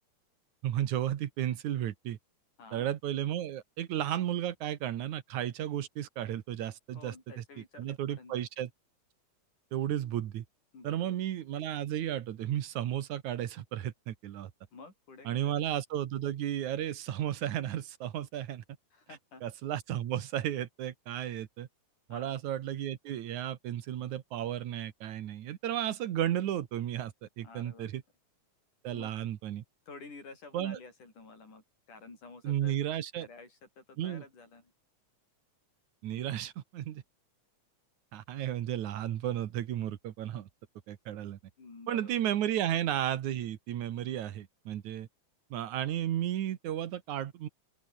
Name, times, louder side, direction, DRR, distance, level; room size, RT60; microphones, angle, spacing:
voice 1, 0.6-2.2 2.7-7.4 7.8-8.7 9.7-10.4 10.8-14.5 15.3-18.6 19.4-21.7 22.1-28.0 28.8-29.6 30.5-30.8 32.4-33.3 34.0-34.2 36.0-37.0 38.1-40.5 40.9-41.4 41.9-45.1 45.5-47.5, right 11 dB, 75° right, 2.7 m, -33 dB
voice 2, 6.9-8.5 10.7-11.2 14.7-15.7 18.9-19.4 22.1-22.4 27.4-27.9 28.9-29.1 29.9-32.8 33.2-34.7 41.6-42.2, left 3 dB, 90° left, 8.8 m, -51 dB
open air
omnidirectional pair, 3.5 m